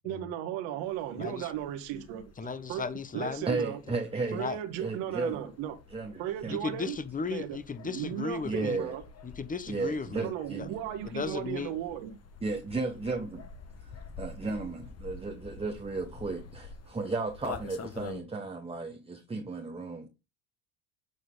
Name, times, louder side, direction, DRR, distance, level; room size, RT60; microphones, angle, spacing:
voice 1, 0.0-2.3 2.7-2.8 3.1-3.8 4.3-5.7 6.2-7.0 7.3-7.6 7.8-9.0 10.1-12.2, right 11 dB, 70° right, 1.6 m, -35 dB
sound 1, 0.8-18.2, left 5 dB, 30° left, 1.2 m, -48 dB
voice 2, 1.2-1.5 2.4-3.5 4.3-4.6 6.5-8.8 9.2-10.3 10.6-10.7 11.0-11.7, left 4 dB, 15° left, 0.9 m, -35 dB
voice 3, 3.5-4.4 4.8-5.4 5.9-6.6 8.4-8.9 9.7-10.8 12.4-13.4 14.2-20.1, right 3 dB, 10° right, 1.0 m, -34 dB
8.1 x 4.6 x 3.8 m
supercardioid pair, 95°, 47 cm